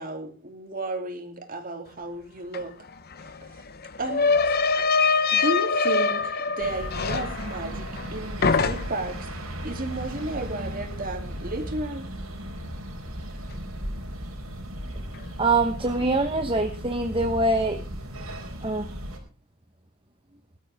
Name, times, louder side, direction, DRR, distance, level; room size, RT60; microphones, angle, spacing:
voice 1, 0.0-2.7 3.2-3.6 4.0-4.6 5.3-12.1, right 2 dB, 40° right, 5 dB, 2.9 m, -33 dB
sound 1, 2.5-2.6 2.9-8.1 8.4-9.2, left 4 dB, 50° left, 1.0 m, -24 dB
sound 2, 6.6-19.2, equal, 90° right, 4.4 m, -36 dB
voice 2, 15.4-17.8 18.6-18.9, right 2 dB, 25° right, 6 dB, 1.0 m, -24 dB
19.5 x 13.0 x 3.5 m, 0.34 s
head